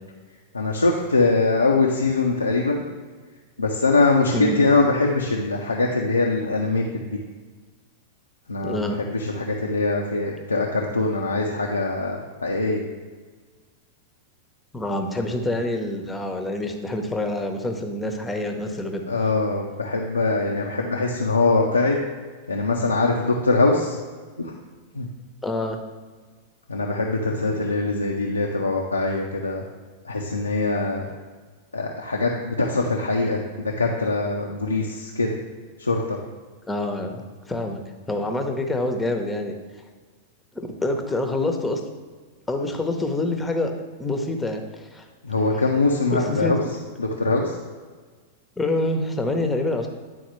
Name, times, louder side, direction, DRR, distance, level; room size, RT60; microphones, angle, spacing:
voice 1, 0.5-2.8 3.6-7.2 8.5-12.8 19.1-22.0 22.5-24.0 24.4-24.5 24.9-25.1 26.7-29.6 30.0-31.1 31.7-35.4 35.8-36.2 45.2-46.6 47.0-47.6, left 3 dB, 90° left, -1 dB, 0.5 m, -22 dB
voice 2, 8.6-9.0 14.7-19.0 25.4-25.8 36.7-37.8 38.1-39.6 40.5-41.8 42.5-43.7 44.0-45.0 46.1-46.7 48.6-49.9, left 2 dB, 10° left, 4 dB, 0.8 m, -26 dB
9.6 x 3.8 x 3.1 m, 1.4 s
figure-of-eight pair, 95°, 0 cm